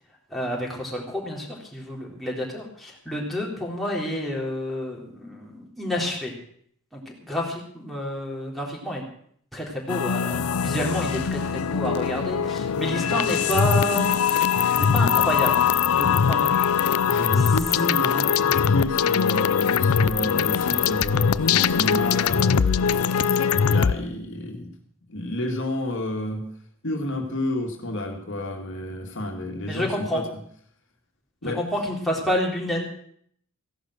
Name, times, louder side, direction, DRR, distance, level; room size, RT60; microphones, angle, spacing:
voice 1, 0.3-6.3 6.9-9.0 9.5-14.5 14.8-16.7 17.4-17.6 29.7-30.2 31.4-32.9, left 1 dB, ahead, -3 dB, 3.8 m, -29 dB
sound 1, 9.9-23.9, left 7 dB, 85° left, 0.6 m, -22 dB
voice 2, 17.1-24.7 25.1-26.5 26.8-30.3 31.4-31.6, left 1 dB, 60° left, 3 dB, 2.1 m, -30 dB
16.0 x 11.0 x 6.4 m, 0.63 s
head